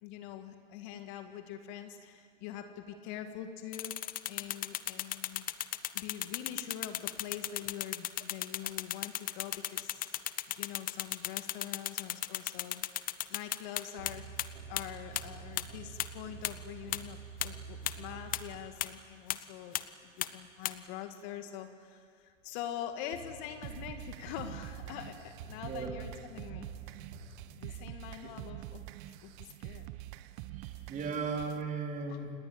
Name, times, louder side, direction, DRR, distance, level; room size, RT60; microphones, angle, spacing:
voice 1, 0.0-5.4 5.9-10.1 10.5-14.2 14.7-26.7 27.6-29.9 32.0-32.2, left 10 dB, 40° left, 7 dB, 2.0 m, -44 dB
sound 1, 3.7-14.1 14.4-14.5 14.8-14.9 15.2-15.3 15.6-15.7 16.0-16.1 16.4-16.5 16.9-17.0 17.4-17.5 17.9-18.0 18.3-18.4 18.8-18.9 19.3-19.4 19.7-19.8 20.2-20.3 20.6-20.7, left 14 dB, 25° left, 0.9 m, -34 dB
sound 2, 14.0-19.1 23.1-28.3, right 5 dB, 65° right, 5.3 m, -49 dB
sound 3, 23.6-31.6, right 16 dB, 40° right, 1.1 m, -46 dB
voice 2, 25.6-26.0 30.6-32.3, right 5 dB, 20° right, 1 dB, 4.2 m, -36 dB
29.0 x 19.0 x 8.5 m, 2.2 s
hypercardioid pair, 110°, 37 cm